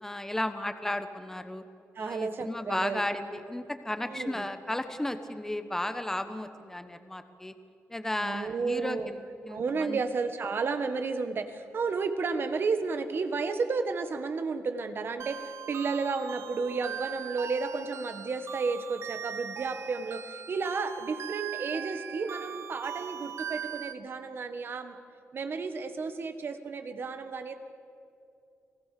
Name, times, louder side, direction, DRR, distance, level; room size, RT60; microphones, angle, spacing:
voice 1, 0.0-1.6 2.0-7.5 7.9-10.0, left 1 dB, 10° left, 9 dB, 1.2 m, -34 dB
voice 2, 1.9-3.0 4.1-4.5 8.2-9.1 9.5-25.0 25.3-27.6, right 4 dB, 50° right, 9 dB, 1.7 m, -32 dB
sound 1, 15.2-23.9, right 8 dB, 65° right, 1.1 m, -40 dB
29.0 x 18.5 x 6.8 m, 2.6 s
cardioid pair, 125°, 5 cm